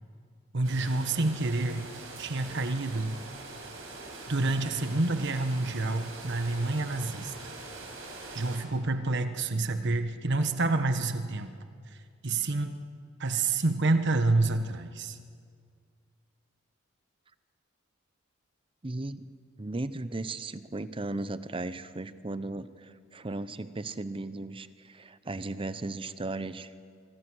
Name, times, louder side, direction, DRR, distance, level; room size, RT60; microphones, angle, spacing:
voice 1, 0.5-3.2 4.3-7.3 8.3-11.5 12.2-12.8 13.2-15.2, right 2 dB, 60° right, 8 dB, 1.2 m, -28 dB
sound 1, 0.6-8.6, right 3 dB, 80° right, 5.8 m, -43 dB
voice 2, 18.8-19.2 19.6-26.7, right 2 dB, 25° right, 14 dB, 0.7 m, -36 dB
25.0 x 24.0 x 6.3 m, 2.1 s
head